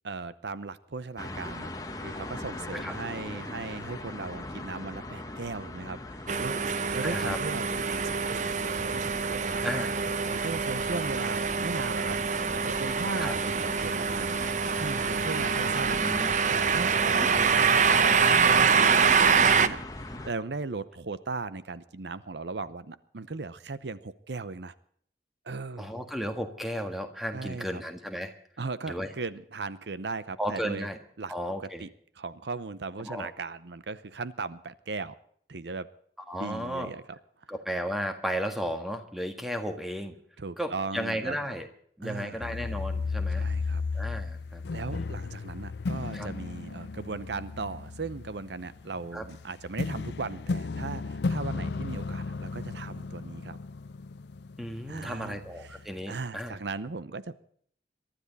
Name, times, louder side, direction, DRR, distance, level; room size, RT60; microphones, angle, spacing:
voice 1, 0.0-1.7 2.0-14.4 14.8-16.0 16.5-19.8 20.2-24.7 25.4-25.9 27.3-27.8 28.6-30.9 31.2-31.3 31.8-31.9 32.2-35.1 35.5-35.9 36.4-37.5 40.4-41.4 42.0-42.5 43.3-43.8 44.7-53.6 54.9-55.8 56.1-57.4, right 3 dB, 75° right, 15 dB, 0.8 m, -37 dB
sound 1, 1.2-20.3, left 2 dB, 20° left, 1.4 m, -41 dB
sound 2, 6.3-19.7, right 5 dB, 40° right, 0.8 m, -25 dB
voice 2, 7.0-7.4 9.6-9.9 13.2-13.3 16.0-16.3 17.4-17.5 19.5-19.6 25.8-28.3 28.9-29.1 30.4-31.0 31.3-31.9 33.0-33.3 36.3-36.9 37.5-40.2 40.6-41.7 42.0-43.5 43.9-44.6 44.9-45.1 46.1-46.3 49.1-49.2 54.6-56.6, equal, ahead, 5 dB, 1.7 m, -34 dB
sound 3, 42.4-56.0, left 4 dB, 75° left, 0.5 m, -35 dB
23.0 x 13.0 x 4.1 m, 0.62 s
head